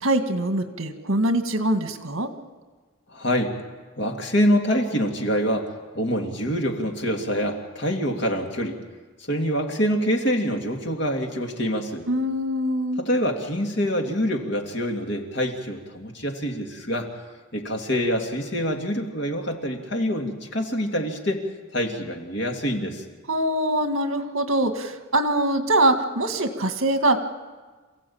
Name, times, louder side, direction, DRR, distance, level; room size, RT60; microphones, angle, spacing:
voice 1, 0.0-2.3 12.1-13.0 23.3-27.2, right 1 dB, 70° right, 7 dB, 1.9 m, -23 dB
voice 2, 3.1-3.5 4.0-8.8 9.3-12.1 13.0-17.1 17.5-21.4 21.7-23.0, equal, 55° left, 2 dB, 2.7 m, -25 dB
28.0 x 16.0 x 8.7 m, 1.4 s
head